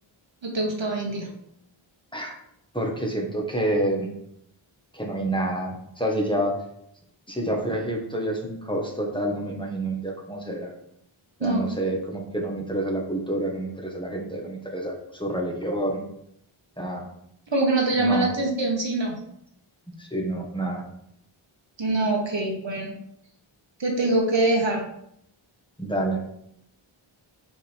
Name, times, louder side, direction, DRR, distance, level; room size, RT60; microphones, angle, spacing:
voice 1, 0.4-1.3 11.4-11.6 17.5-19.2 21.8-22.9 23.8-24.8, right 2 dB, 60° right, 1 dB, 1.4 m, -24 dB
voice 2, 2.7-4.1 4.9-6.5 7.3-10.7 11.4-16.0 16.8-17.0 18.0-18.3 20.0-20.8 25.8-26.2, right 1 dB, 10° left, -1 dB, 1.4 m, -28 dB
5.7 x 4.8 x 3.5 m, 0.74 s
cardioid pair, 40°, 50 cm